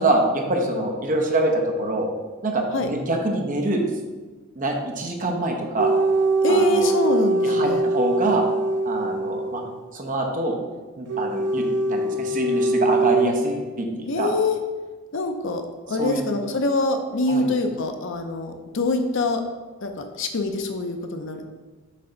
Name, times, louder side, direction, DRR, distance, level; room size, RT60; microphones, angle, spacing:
voice 1, 0.0-2.1 2.4-3.8 4.5-5.9 6.5-6.9 7.4-8.4 8.8-9.6 9.9-10.6 11.0-14.3 16.0-16.3 17.3-17.5, right 2 dB, 40° right, 2 dB, 0.8 m, -25 dB
sound 1, 5.8-9.8 11.1-13.3, right 2 dB, 60° right, 0.4 m, -22 dB
voice 2, 6.4-7.8 14.1-14.6 15.1-15.6 15.9-19.4 19.8-21.4, left 2 dB, 60° left, 5 dB, 0.6 m, -24 dB
7.5 x 3.4 x 3.9 m, 1.3 s
head